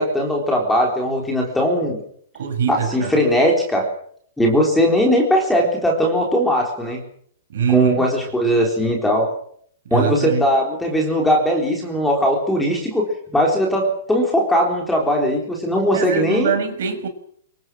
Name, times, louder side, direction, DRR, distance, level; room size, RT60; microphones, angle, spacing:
voice 1, 0.0-2.0 2.7-3.9 4.4-7.0 7.7-9.3 9.9-13.1 13.3-16.6, equal, 5° left, 0 dB, 3.9 m, -19 dB
voice 2, 2.3-3.1 7.5-8.0 9.8-10.5 15.9-17.1, right 7 dB, 60° right, 8 dB, 5.9 m, -23 dB
26.5 x 23.0 x 6.3 m, 0.62 s
hypercardioid pair, 180°, 0 cm